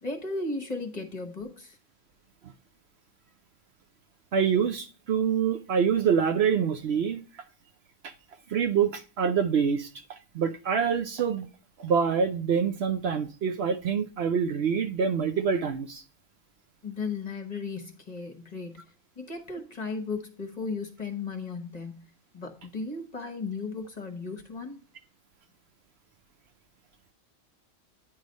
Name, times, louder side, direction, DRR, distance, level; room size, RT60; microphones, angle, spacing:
voice 1, 0.0-1.8 16.8-18.8 19.2-22.1 22.3-24.8, left 3 dB, 35° left, 1.1 m, -35 dB
voice 2, 4.3-7.2 8.0-8.1 8.5-11.5 11.8-16.0, right 7 dB, 65° right, 0.8 m, -26 dB
9.6 x 3.2 x 5.1 m
omnidirectional pair, 1.3 m